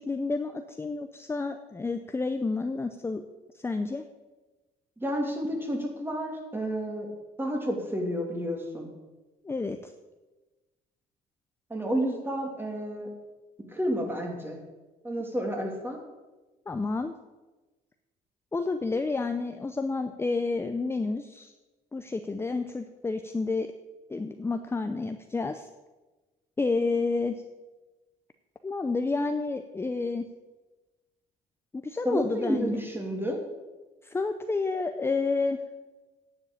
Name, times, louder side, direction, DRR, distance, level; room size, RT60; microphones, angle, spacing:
voice 1, 0.0-3.2 3.6-4.0 9.4-9.9 16.7-17.1 18.5-21.5 21.9-23.7 24.1-25.7 26.6-27.4 28.6-30.3 31.7-32.8 34.0-35.6, left 3 dB, 15° left, 8 dB, 0.6 m, -30 dB
voice 2, 5.0-7.1 7.4-8.9 11.7-13.1 13.7-14.6 15.0-16.0 32.0-33.4, equal, 15° right, 2 dB, 2.6 m, -30 dB
9.7 x 7.6 x 8.4 m, 1.2 s
cardioid pair, 110°, 17 cm